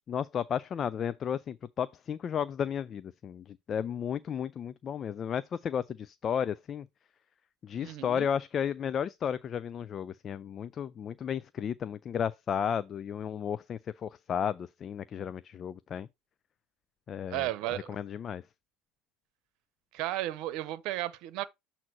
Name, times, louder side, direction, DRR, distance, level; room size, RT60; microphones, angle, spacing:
voice 1, 0.1-6.9 7.6-16.1 17.1-17.5 17.9-18.4, left 8 dB, 40° left, 0.4 m, -33 dB
voice 2, 7.8-8.3 17.3-17.9 19.9-21.4, right 15 dB, 65° right, 0.8 m, -34 dB
7.5 x 2.8 x 6.0 m
supercardioid pair, 90°, 0 cm